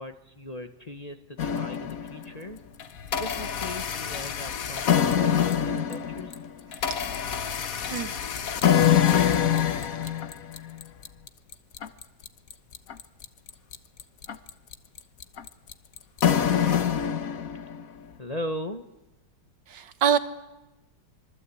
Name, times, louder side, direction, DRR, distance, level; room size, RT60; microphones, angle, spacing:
voice 1, 0.0-2.6 3.2-6.3 18.2-18.8, left 1 dB, 25° left, 6 dB, 1.0 m, -38 dB
sound 1, 1.4-2.3 2.8-17.8, left 9 dB, 55° left, 1.4 m, -25 dB
voice 2, 7.9-8.3 19.7-20.2, right 8 dB, 90° right, 10 dB, 2.0 m, -25 dB
26.0 x 23.0 x 8.4 m, 1.0 s
omnidirectional pair, 2.0 m